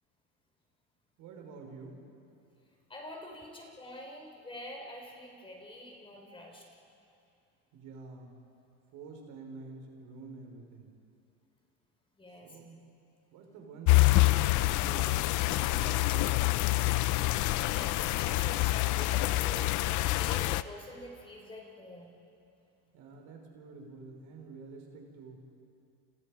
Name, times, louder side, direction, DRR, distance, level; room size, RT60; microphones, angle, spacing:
voice 1, 1.2-2.0 7.7-8.3 8.9-10.9 12.4-12.8 13.3-16.5 22.9-25.4, right 3 dB, 65° right, 2 dB, 5.0 m, -48 dB
voice 2, 2.9-6.6 12.2-12.6 17.6-22.1, left 1 dB, 15° left, 0 dB, 4.9 m, -46 dB
sound 1, 13.9-20.6, left 18 dB, 60° left, 0.7 m, -26 dB
29.5 x 29.0 x 5.0 m, 2.6 s
cardioid pair, 125°, 34 cm